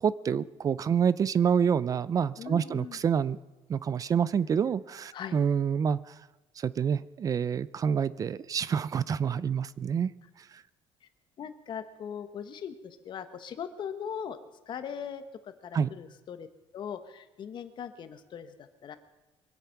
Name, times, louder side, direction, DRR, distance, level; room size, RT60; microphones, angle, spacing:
voice 1, 0.0-3.4 3.7-6.0 6.6-10.1 15.7-15.9, right 7 dB, 30° right, 19 dB, 0.4 m, -27 dB
voice 2, 2.4-3.0 5.1-5.4 11.4-14.4 14.7-16.5 16.7-19.0, left 8 dB, 45° left, 9 dB, 1.2 m, -40 dB
23.5 x 8.4 x 5.8 m, 1.1 s
cardioid pair, 140°, 11 cm